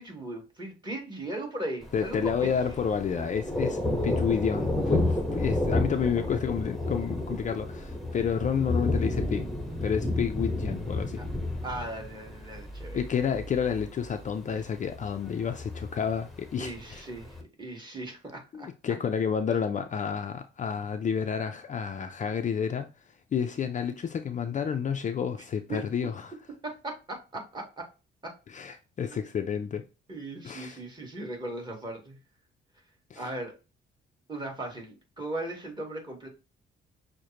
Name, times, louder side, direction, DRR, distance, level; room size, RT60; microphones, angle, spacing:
voice 1, 0.0-2.5 11.6-13.0 16.6-19.0 25.7-25.8 26.6-27.8 28.2-28.3 29.1-29.2 30.1-32.2 33.2-33.5 34.3-36.3, right 1 dB, 20° right, 1.9 m, -38 dB
Thunder, 1.8-17.4, left 1 dB, ahead, 1.0 m, -31 dB
voice 2, 1.9-9.5 9.8-11.2 12.9-17.0 18.5-22.9 23.3-26.3 28.5-29.8 30.4-30.8 33.1-33.3, left 7 dB, 40° left, 0.4 m, -30 dB
6.2 x 2.2 x 2.8 m
cardioid pair, 90°, 20 cm